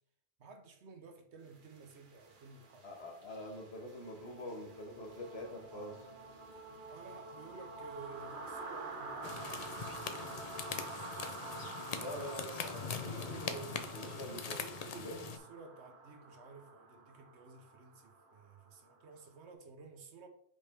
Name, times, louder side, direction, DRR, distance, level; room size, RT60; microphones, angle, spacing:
voice 1, 0.4-2.9 6.9-11.3 12.8-20.3, right 4 dB, 85° right, 1.2 m, -53 dB
sound 1, 1.5-19.3, right 3 dB, 50° right, 1.1 m, -48 dB
voice 2, 2.8-6.1 11.9-13.4 13.9-14.6 14.9-15.2, left 1 dB, 70° left, 1.7 m, -45 dB
sound 2, 9.2-15.4, left 5 dB, 45° left, 0.5 m, -42 dB
5.5 x 5.1 x 3.4 m
omnidirectional pair, 1.1 m